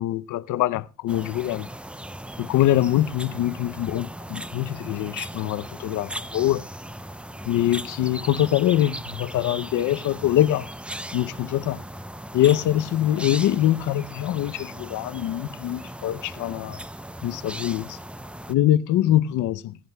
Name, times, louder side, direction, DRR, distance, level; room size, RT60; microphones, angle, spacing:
voice 1, 0.0-1.7 2.4-6.6 7.5-10.7 11.1-11.8 12.3-16.8 17.2-18.0 18.5-19.8, left 13 dB, 80° left, 0.7 m, -23 dB
sound 1, 1.1-18.5, right 1 dB, 5° right, 0.5 m, -38 dB
16.5 x 16.0 x 2.2 m
cardioid pair, 90°, 30 cm